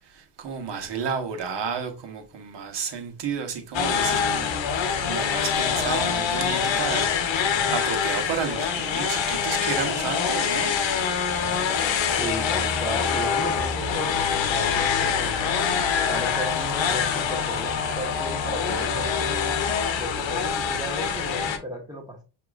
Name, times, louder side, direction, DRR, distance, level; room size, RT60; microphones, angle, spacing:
voice 1, 0.1-10.7, right 6 dB, 65° right, 1.1 m, -32 dB
sound 1, 3.7-21.6, left 7 dB, 75° left, 0.8 m, -25 dB
voice 2, 12.1-15.5 16.1-19.5 20.0-22.2, right 1 dB, 10° right, 1.1 m, -35 dB
6.0 x 2.9 x 2.4 m
cardioid pair, 75°, 46 cm